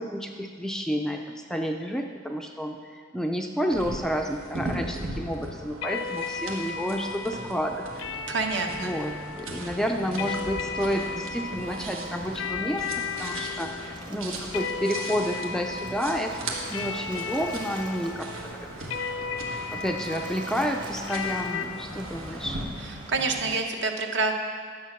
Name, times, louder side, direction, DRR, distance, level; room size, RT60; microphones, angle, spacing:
voice 1, 0.0-8.4 8.7-16.3 16.7-19.0 19.7-22.6, equal, 5° left, 2 dB, 0.4 m, -30 dB
sound 1, 3.7-22.6, right 2 dB, 85° right, 1.6 m, -39 dB
sound 2, 5.8-21.6, left 5 dB, 80° left, 0.6 m, -35 dB
Waves surf, 7.9-23.5, equal, 25° right, 0.9 m, -43 dB
voice 2, 8.3-8.9 23.1-24.3, right 3 dB, 60° right, 3 dB, 1.0 m, -27 dB
11.0 x 7.7 x 5.8 m, 2.1 s
head